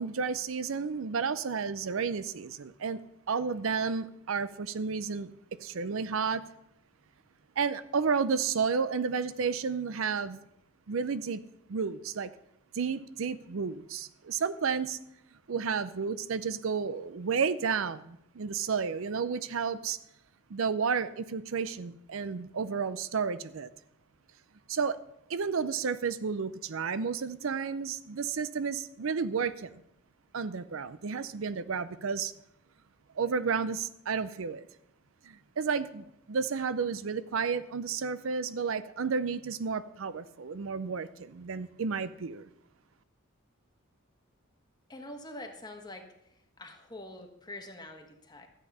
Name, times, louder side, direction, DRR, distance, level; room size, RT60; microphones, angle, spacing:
voice 1, 0.0-3.0 3.3-5.3 5.6-6.4 7.6-10.4 10.9-11.4 11.7-12.3 12.7-15.0 15.5-20.0 20.5-23.7 24.7-25.0 25.3-29.8 30.3-32.3 33.2-34.7 35.2-42.5, right 5 dB, 70° right, 0.5 m, -32 dB
voice 2, 44.9-46.1 46.6-48.5, left 1 dB, 20° left, 1.4 m, -45 dB
13.0 x 8.7 x 5.5 m
head